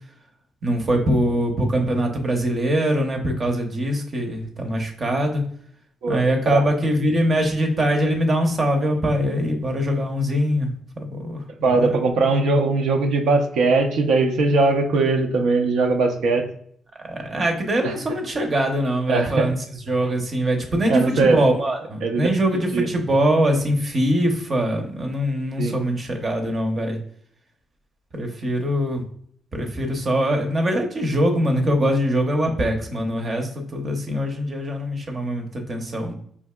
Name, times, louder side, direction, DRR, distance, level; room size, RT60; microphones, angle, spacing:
voice 1, 0.6-5.4 6.1-12.1 17.1-27.0 28.1-29.0 29.5-36.1, equal, 40° right, 3 dB, 0.7 m, -23 dB
voice 2, 11.6-16.4 17.8-17.9 19.1-19.4 20.9-21.4 22.0-22.3 22.7-22.9 25.6-25.7, right 3 dB, 75° right, 4 dB, 0.5 m, -20 dB
4.6 x 2.6 x 2.2 m, 0.64 s
cardioid pair, 90°, 0 cm